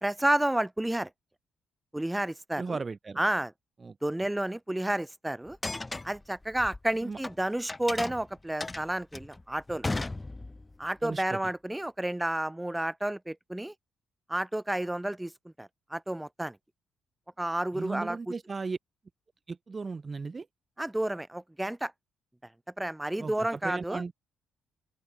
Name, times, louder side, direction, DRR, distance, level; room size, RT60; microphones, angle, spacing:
voice 1, 0.0-1.1 1.9-2.8 3.2-3.5 4.0-5.6 6.0-9.9 10.8-13.7 14.3-15.3 15.6-16.6 17.4-18.3 20.8-21.9 22.8-24.0, right 1 dB, 10° right, 1.4 m, -31 dB
voice 2, 2.6-3.2 3.8-3.9 7.0-7.2 11.0-11.4 17.7-18.8 19.5-20.5 23.2-24.1, right 4 dB, 30° right, 1.0 m, -36 dB
sound 1, 5.5-7.3 7.7-10.8, left 2 dB, 20° left, 0.4 m, -36 dB
open air
cardioid pair, 90°, 0 cm